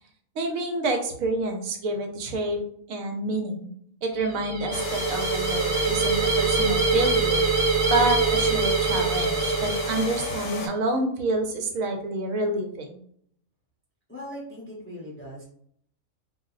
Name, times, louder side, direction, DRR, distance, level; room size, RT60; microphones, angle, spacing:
voice 1, 0.4-2.6 2.9-3.7 4.0-7.4 7.9-13.0, right 2 dB, 75° right, 4 dB, 1.0 m, -28 dB
sound 1, 4.2-10.6, right 4 dB, 55° right, 0.8 m, -24 dB
sound 2, 4.7-10.7, left 4 dB, 70° left, 0.9 m, -33 dB
voice 2, 14.1-15.4, equal, 10° left, -5 dB, 0.6 m, -39 dB
2.5 x 2.0 x 3.8 m, 0.65 s
omnidirectional pair, 1.4 m